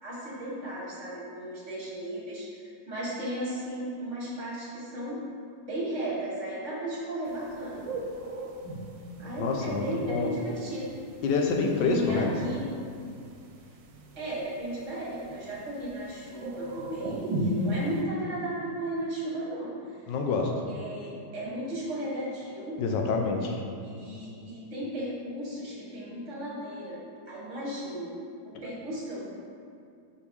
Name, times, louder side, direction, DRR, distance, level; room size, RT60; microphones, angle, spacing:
voice 1, 0.0-5.2 5.7-7.9 9.2-10.9 11.7-12.7 14.2-20.0 20.3-22.8 23.8-27.0 27.3-28.2 28.4-29.3, right 1 dB, 40° right, -6 dB, 1.8 m, -35 dB
sound 1, 7.3-18.0, right 1 dB, 80° right, 1.4 m, -37 dB
voice 2, 9.4-10.3 11.2-12.3 20.1-20.5 22.8-23.6, left 4 dB, 75° left, 2 dB, 1.4 m, -27 dB
5.2 x 5.0 x 4.7 m, 2.4 s
omnidirectional pair, 2.0 m